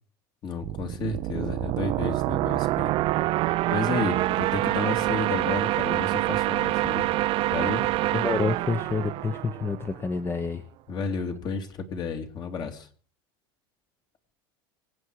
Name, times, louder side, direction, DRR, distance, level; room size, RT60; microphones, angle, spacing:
voice 1, 0.4-2.9 3.7-7.1 7.5-8.0 10.9-12.9, left 4 dB, 40° left, 6 dB, 2.9 m, -32 dB
sound 1, 0.6-10.2, right 17 dB, 50° right, 0.6 m, -26 dB
voice 2, 8.1-10.6, left 4 dB, 20° left, 10 dB, 1.1 m, -28 dB
24.0 x 8.8 x 4.9 m, 0.44 s
supercardioid pair, 115°, 12 cm